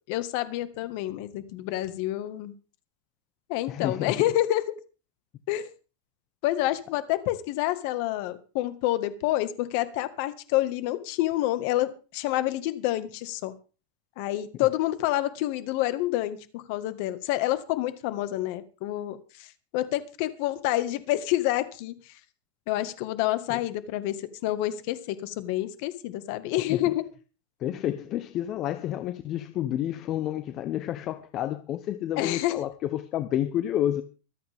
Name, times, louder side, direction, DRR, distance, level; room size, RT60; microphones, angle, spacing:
voice 1, 0.1-2.5 3.5-4.6 5.5-5.7 6.4-13.5 14.2-19.5 19.7-21.9 22.7-27.0 32.2-32.5, left 15 dB, 50° left, 1.7 m, -28 dB
voice 2, 3.7-4.2 23.5-23.6 26.7-26.8 27.6-34.0, left 11 dB, 35° left, 0.9 m, -30 dB
24.5 x 8.6 x 3.6 m
supercardioid pair, 150°, 0 cm